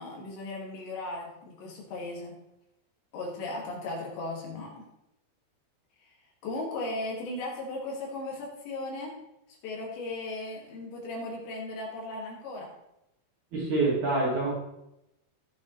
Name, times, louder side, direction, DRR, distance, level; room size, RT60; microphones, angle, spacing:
voice 1, 0.0-2.4 3.1-4.8 6.0-6.1 6.4-9.1 9.6-12.7, left 2 dB, 70° left, -2 dB, 4.5 m, -36 dB
voice 2, 13.5-14.6, right 3 dB, 50° right, -5 dB, 2.8 m, -26 dB
17.0 x 7.2 x 3.3 m, 0.87 s
omnidirectional pair, 5.5 m